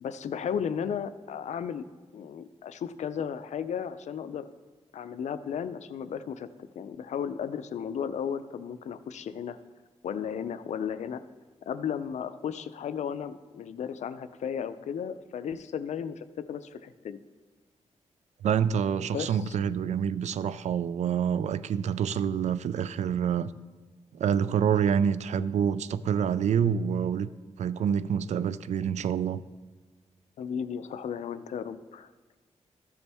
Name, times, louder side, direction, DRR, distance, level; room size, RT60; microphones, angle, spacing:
voice 1, 0.0-1.8 2.1-4.5 4.9-6.5 6.8-9.6 10.0-11.2 11.7-17.2 19.1-19.6 30.4-32.1, left 7 dB, 80° left, 12 dB, 0.5 m, -34 dB
voice 2, 18.4-23.5 24.1-27.3 27.6-29.4, right 8 dB, 80° right, 16 dB, 0.4 m, -27 dB
14.0 x 7.0 x 3.4 m, 1.3 s
wide cardioid pair, 170°, 12 cm